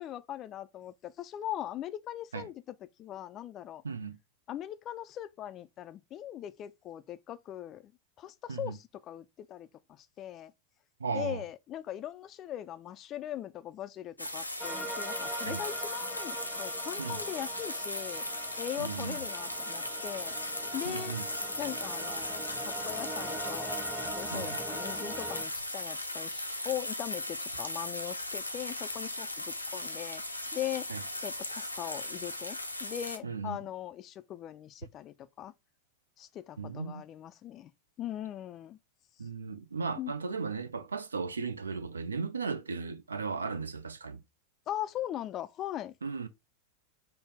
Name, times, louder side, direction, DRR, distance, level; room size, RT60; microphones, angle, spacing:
voice 1, 0.0-2.6 3.0-3.8 4.5-7.9 8.2-10.5 11.1-18.3 18.6-20.3 20.7-21.2 21.6-30.2 30.5-30.9 31.2-35.5 36.2-37.7 38.0-38.8 40.0-40.1 44.7-45.9, left 12 dB, 30° left, 0.3 m, -40 dB
voice 2, 3.8-4.2 8.5-8.8 11.0-11.4 15.5-15.6 17.0-17.2 18.8-19.2 20.9-21.3 24.3-24.6 30.9-31.0 33.2-33.6 36.6-37.0 39.2-44.2 46.0-46.3, right 5 dB, 75° right, 0.5 m, -36 dB
sound 1, 14.2-33.2, left 1 dB, 85° left, 0.5 m, -37 dB
sound 2, 14.6-25.4, right 2 dB, 5° right, 0.8 m, -42 dB
5.4 x 2.0 x 3.3 m
figure-of-eight pair, 90°, 0 cm